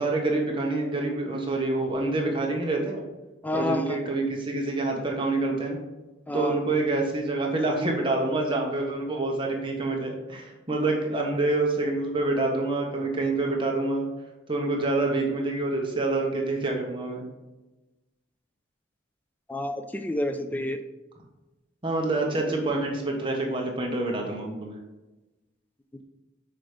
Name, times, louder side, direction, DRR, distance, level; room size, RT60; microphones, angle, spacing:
voice 1, 0.0-3.0 3.5-5.8 6.3-14.1 14.5-17.2 21.8-24.7, right 2 dB, 25° right, 0 dB, 1.1 m, -27 dB
voice 2, 3.4-4.0 6.3-6.6 19.5-20.8, left 1 dB, 10° left, 7 dB, 0.4 m, -29 dB
6.2 x 4.7 x 5.0 m, 1.1 s
head